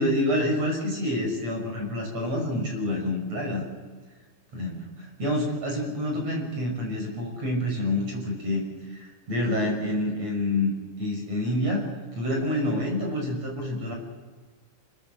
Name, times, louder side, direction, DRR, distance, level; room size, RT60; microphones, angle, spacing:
voice 1, 0.0-3.6 4.5-8.6 8.9-11.9 12.1-13.9, left 1 dB, 30° right, 1 dB, 7.0 m, -27 dB
28.0 x 19.5 x 7.7 m, 1.5 s
omnidirectional pair, 5.9 m